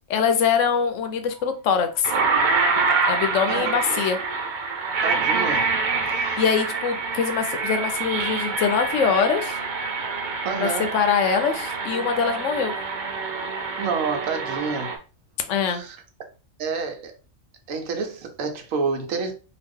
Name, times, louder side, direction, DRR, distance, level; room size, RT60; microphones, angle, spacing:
voice 1, 0.1-2.1 3.1-4.2 6.4-9.6 10.6-12.7 15.5-15.8, left 6 dB, 70° left, 0.9 m, -23 dB
sound 1, 1.4-1.5 2.0-15.0, right 4 dB, 55° right, 0.5 m, -26 dB
voice 2, 5.0-5.6 6.2-6.4 10.4-10.9 13.8-14.9 15.7-16.0 16.6-17.1 17.7-19.3, right 5 dB, 80° right, 1.1 m, -28 dB
2.8 x 2.4 x 3.5 m
omnidirectional pair, 1.4 m